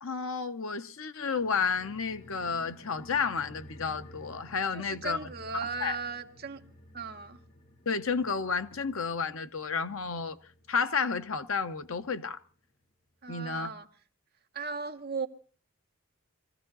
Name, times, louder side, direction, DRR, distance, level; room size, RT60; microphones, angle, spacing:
voice 1, 0.0-5.2 5.8-6.0 7.9-10.4 10.7-12.4 13.3-13.7, left 5 dB, 70° left, 0.9 m, -31 dB
sound 1, 1.4-12.2 12.5-12.6, left 1 dB, 40° left, 1.3 m, -53 dB
voice 2, 4.7-6.6 6.9-7.4 13.2-13.9 14.5-15.3, right 4 dB, 45° right, 1.1 m, -37 dB
22.5 x 15.5 x 4.0 m
head